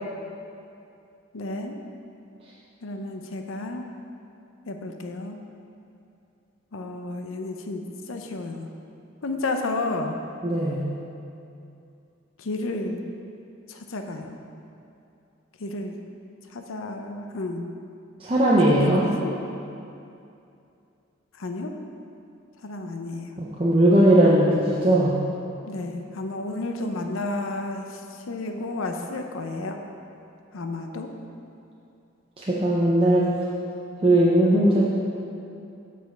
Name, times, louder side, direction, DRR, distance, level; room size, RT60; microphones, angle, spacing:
voice 1, 1.3-1.8 2.8-3.9 4.7-5.4 6.7-7.8 8.1-8.7 9.2-10.2 12.4-13.0 13.7-14.4 15.6-15.9 16.5-17.7 18.7-19.4 21.4-21.7 22.6-23.3 25.6-28.0 28.3-29.8 30.5-31.1, left 2 dB, 80° left, 4 dB, 0.6 m, -31 dB
voice 2, 10.4-10.8 18.2-19.1 23.4-25.2 32.5-33.3 34.0-34.8, right 1 dB, 25° right, -6 dB, 0.6 m, -19 dB
8.1 x 5.0 x 5.0 m, 2.7 s
head